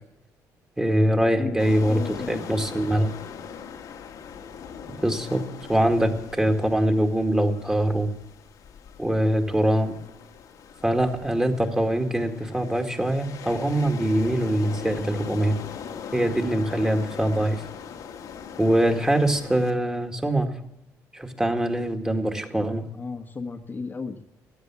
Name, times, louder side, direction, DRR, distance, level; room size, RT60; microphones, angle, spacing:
voice 1, 0.8-3.1 5.0-5.4 5.7-8.1 9.0-10.0 10.8-15.6 16.1-17.6 18.6-20.5 21.1-22.9, right 1 dB, 10° right, 4 dB, 2.0 m, -23 dB
voice 2, 1.3-2.5 22.9-24.3, left 4 dB, 30° left, 4 dB, 1.3 m, -35 dB
sound 1, 1.6-19.7, left 7 dB, 70° left, 1.6 m, -40 dB
15.0 x 9.7 x 7.2 m, 0.86 s
cardioid pair, 95°, 7 cm